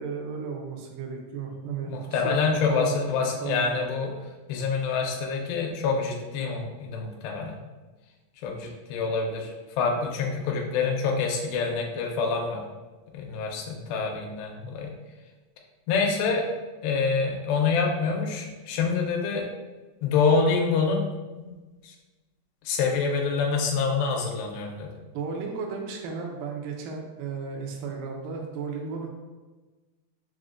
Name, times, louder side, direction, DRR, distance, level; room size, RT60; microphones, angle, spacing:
voice 1, 0.0-3.7 25.1-29.1, right 5 dB, 80° right, 0 dB, 2.0 m, -34 dB
voice 2, 1.9-4.1 4.5-7.5 8.4-9.5 9.8-12.6 13.1-14.9 15.9-16.5 16.8-19.4 20.0-21.1 21.4-21.6 21.8-21.9 22.7-24.9, left 5 dB, 85° left, 0 dB, 2.4 m, -26 dB
6.0 x 2.1 x 2.4 m, 1.2 s
omnidirectional pair, 4.3 m